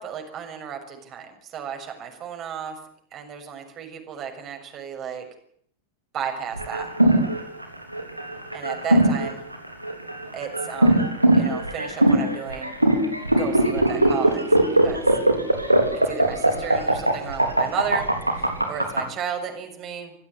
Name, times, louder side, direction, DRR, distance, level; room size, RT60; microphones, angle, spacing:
voice 1, 0.0-2.7 3.1-5.3 6.1-6.9 8.5-9.4 10.3-11.1 11.3-12.7 13.3-15.0 16.0-18.1 18.4-20.1, right 8 dB, 30° right, 5 dB, 6.7 m, -34 dB
sound 1, 6.6-19.0, right 1 dB, 85° right, 3.7 m, -20 dB
25.5 x 16.0 x 9.9 m, 0.66 s
figure-of-eight pair, 90°, 0 cm